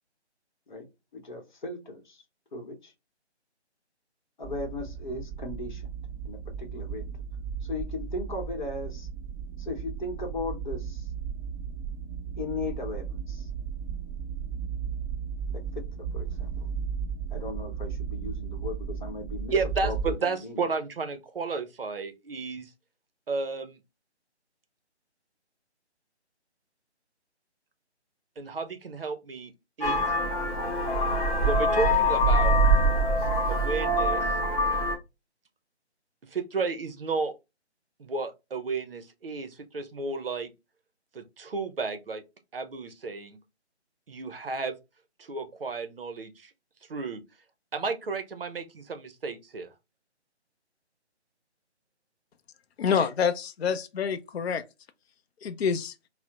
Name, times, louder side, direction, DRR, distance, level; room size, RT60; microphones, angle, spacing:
voice 1, 1.1-2.2 2.5-2.9 4.4-5.9 6.2-7.1 7.6-9.1 9.6-11.1 12.4-13.5 15.5-16.7 17.3-19.5 19.8-20.6, left 2 dB, 45° left, 0.9 m, -37 dB
sound 1, 4.4-20.1, right 7 dB, 5° right, 1.0 m, -35 dB
voice 2, 19.5-22.7 23.3-23.8 28.4-29.5 29.8-30.0 31.4-32.6 33.5-34.3 36.3-37.3 38.0-40.5 41.1-42.2 42.5-43.4 44.1-44.8 45.2-46.5 46.9-47.2 47.7-49.7, right 4 dB, 55° right, 0.6 m, -32 dB
Vehicle horn car horn honking, 29.8-35.0, equal, 20° left, 0.9 m, -24 dB
voice 3, 52.8-54.6 55.4-55.9, left 6 dB, 65° left, 0.5 m, -27 dB
4.2 x 2.0 x 2.3 m
figure-of-eight pair, 155°, 34 cm